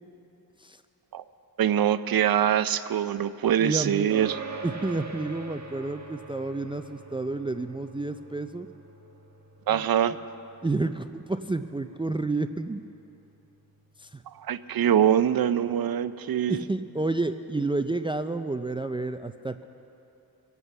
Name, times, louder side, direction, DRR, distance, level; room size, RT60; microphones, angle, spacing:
voice 1, 1.6-4.4 9.7-10.1 14.4-16.6, right 10 dB, 70° right, 13 dB, 0.6 m, -24 dB
voice 2, 3.6-4.1 4.6-8.7 9.7-9.9 10.6-12.8 14.0-14.2 16.5-19.6, right 2 dB, 15° right, 9 dB, 0.4 m, -30 dB
sound 1, 4.1-13.8, right 3 dB, 45° right, 1.4 m, -44 dB
24.5 x 8.2 x 5.5 m, 2.8 s
wide cardioid pair, 90°, 38 cm